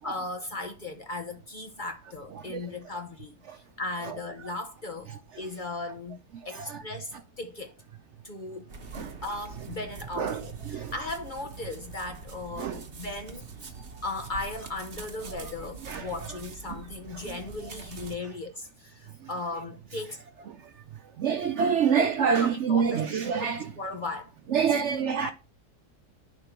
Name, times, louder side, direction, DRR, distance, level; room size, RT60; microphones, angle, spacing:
voice 1, 0.0-5.1 5.4-6.2 6.4-7.7 8.2-8.7 9.2-13.5 14.0-20.2 22.0-23.5 23.8-24.3 25.2-25.3, left 2 dB, 40° left, 0.9 m, -37 dB
sound 1, 8.7-18.2, right 4 dB, 40° right, 1.1 m, -44 dB
voice 2, 10.2-10.9 12.6-12.8 15.9-16.1 21.2-23.7 24.5-25.3, right 7 dB, 60° right, 0.8 m, -26 dB
10.5 x 3.7 x 4.5 m
omnidirectional pair, 1.6 m